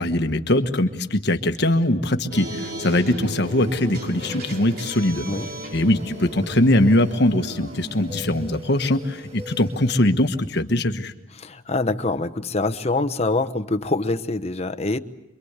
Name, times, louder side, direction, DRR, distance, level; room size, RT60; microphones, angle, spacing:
voice 1, 0.0-5.2 5.7-11.1, left 1 dB, 60° left, 7 dB, 1.4 m, -21 dB
sound 1, 2.3-9.7, right 1 dB, 55° right, 3.1 m, -36 dB
sound 2, 3.3-10.1, right 2 dB, 30° right, 2.3 m, -42 dB
voice 2, 11.4-15.0, left 2 dB, 35° left, 9 dB, 1.0 m, -25 dB
27.0 x 23.5 x 8.2 m, 0.94 s
head